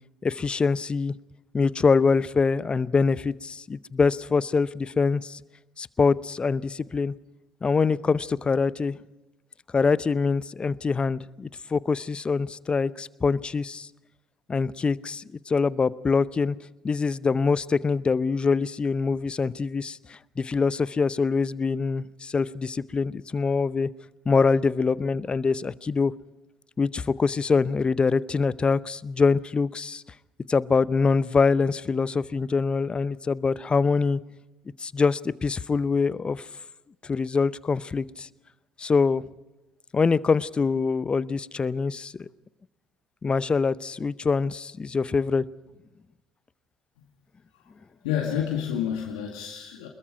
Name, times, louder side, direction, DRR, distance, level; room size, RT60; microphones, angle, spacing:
voice 1, 0.2-1.1 1.5-5.4 5.8-7.1 7.6-9.0 9.7-13.9 14.5-16.6 16.8-23.9 24.3-26.1 26.8-30.0 30.5-34.2 34.8-36.4 37.0-38.3 38.8-39.2 39.9-42.3 43.2-45.4, left 4 dB, 30° left, 19 dB, 0.7 m, -24 dB
voice 2, 48.0-49.9, left 9 dB, 75° left, 1 dB, 2.0 m, -29 dB
24.0 x 21.5 x 5.1 m, 1.0 s
hypercardioid pair, 55°, 4 cm